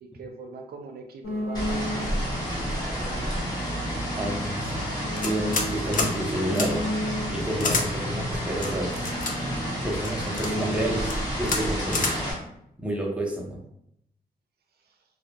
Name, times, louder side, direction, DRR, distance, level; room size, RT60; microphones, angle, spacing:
voice 1, 0.0-3.5, right 4 dB, 75° right, 4 dB, 0.4 m, -42 dB
sound 1, 1.2-2.3 3.1-7.6 8.3-11.7, equal, 70° left, 1.0 m, -34 dB
sound 2, 1.5-12.3, equal, 25° left, 0.8 m, -30 dB
voice 2, 4.2-6.8 7.3-9.1 9.8-12.1 12.8-13.6, right 1 dB, 5° right, -2 dB, 0.5 m, -30 dB
sound 3, 5.2-5.7 5.9-6.1 6.5-6.7 7.6-7.9 8.6-9.3 10.0-10.5 11.0-11.2 11.5-11.6 11.9-12.1, left 4 dB, 55° left, 0.4 m, -27 dB
2.2 x 2.1 x 2.7 m, 0.75 s
wide cardioid pair, 165°, 16 cm